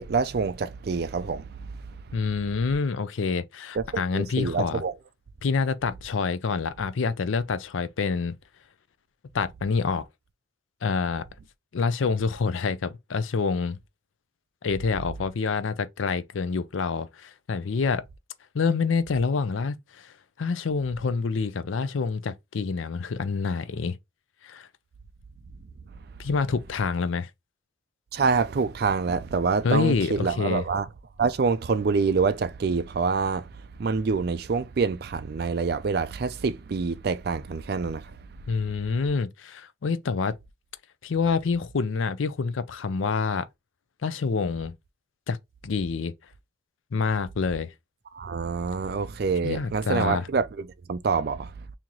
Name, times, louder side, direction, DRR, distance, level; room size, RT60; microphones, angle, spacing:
voice 1, 0.0-2.1 3.7-4.9 28.1-30.9 31.2-38.2 48.1-51.7, right 5 dB, 55° right, 0.4 m, -26 dB
voice 2, 2.1-4.8 5.4-8.3 9.3-10.1 10.8-11.2 11.7-13.8 14.6-18.0 18.5-24.0 24.4-24.7 26.2-27.3 29.6-30.6 38.5-40.3 41.0-43.5 44.0-44.7 45.3-45.4 45.6-46.1 46.9-47.7 49.4-50.2, left 5 dB, 85° left, 0.5 m, -27 dB
3.0 x 2.8 x 3.8 m
head